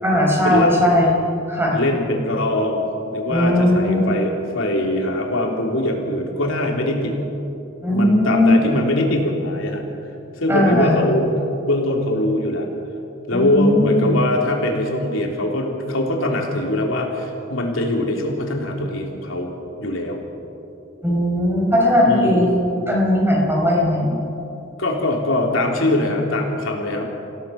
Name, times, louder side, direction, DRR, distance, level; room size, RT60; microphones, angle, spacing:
voice 1, 0.0-1.8 3.3-4.0 7.8-8.5 10.5-11.0 13.3-14.1 21.0-24.2, left 1 dB, 10° right, -2 dB, 4.7 m, -18 dB
voice 2, 1.7-7.1 7.9-9.8 10.4-11.3 11.7-12.7 13.3-19.5 19.8-20.2 22.0-22.5 24.8-27.1, left 1 dB, 90° left, 0 dB, 3.5 m, -22 dB
27.0 x 16.5 x 6.0 m, 2.9 s
head